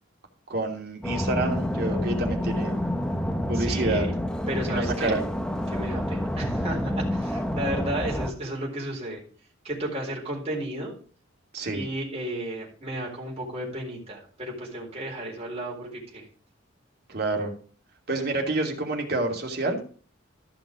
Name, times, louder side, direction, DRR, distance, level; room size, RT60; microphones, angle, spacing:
voice 1, 0.5-2.8 3.5-4.1 4.7-5.2 11.5-11.8 17.1-17.5 18.1-19.8, right 2 dB, 50° right, 1 dB, 2.9 m, -28 dB
sound 1, 1.0-8.3, left 1 dB, 5° left, 0.9 m, -28 dB
voice 2, 3.5-4.1 4.5-5.2 5.7-9.2 9.6-10.9 11.7-16.3, right 1 dB, 30° right, -2 dB, 3.9 m, -33 dB
14.0 x 6.0 x 5.0 m, 0.41 s
head